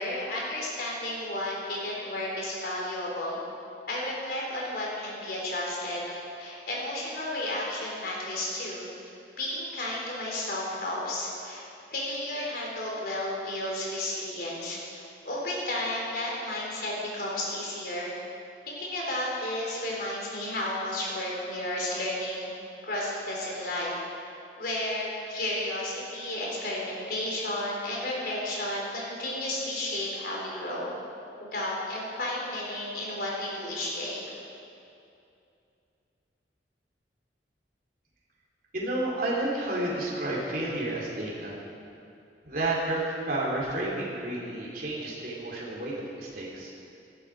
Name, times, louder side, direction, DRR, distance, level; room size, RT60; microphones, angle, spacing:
voice 1, 0.0-3.4 3.9-8.9 9.4-11.6 11.9-18.1 18.7-22.5 22.8-23.9 24.6-30.9 31.4-34.3, left 1 dB, 55° left, -4 dB, 4.1 m, -32 dB
voice 2, 38.7-41.5 42.5-43.0 43.3-46.7, right 1 dB, 50° right, -4 dB, 3.5 m, -31 dB
17.0 x 12.0 x 4.9 m, 2.6 s
head